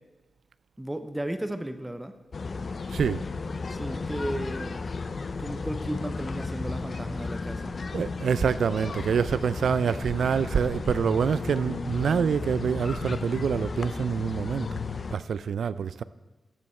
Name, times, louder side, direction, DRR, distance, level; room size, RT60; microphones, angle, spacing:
voice 1, 0.8-2.2 3.7-4.8 5.4-7.8, right 1 dB, 10° right, 0.5 m, -34 dB
sound 1, 2.3-15.2, left 4 dB, 40° left, 0.5 m, -34 dB
voice 2, 2.9-3.2 7.9-14.7 15.1-16.0, right 7 dB, 75° right, 0.3 m, -26 dB
13.5 x 9.2 x 4.3 m
wide cardioid pair, 165°, 0 cm